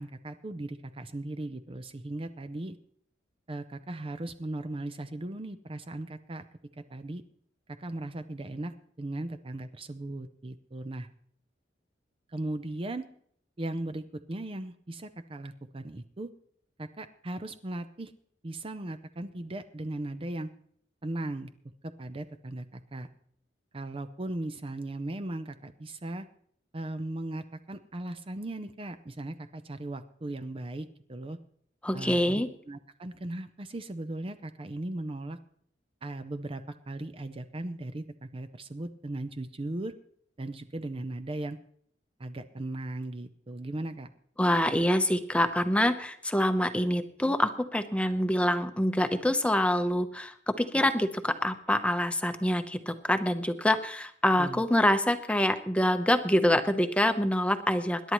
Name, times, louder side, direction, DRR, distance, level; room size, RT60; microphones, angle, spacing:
voice 1, 0.0-2.8 3.5-6.4 6.7-7.2 7.7-11.1 12.3-13.1 13.6-16.3 16.8-18.1 18.4-20.5 21.0-21.5 21.8-23.1 23.7-26.3 26.7-31.4 31.9-35.4 36.0-39.9 40.4-41.6 42.2-44.1 54.4-54.6, right 1 dB, 30° right, 9 dB, 0.6 m, -37 dB
voice 2, 31.8-32.5 44.4-58.1, left 1 dB, 5° left, 7 dB, 0.8 m, -26 dB
25.5 x 11.0 x 3.0 m, 0.63 s
head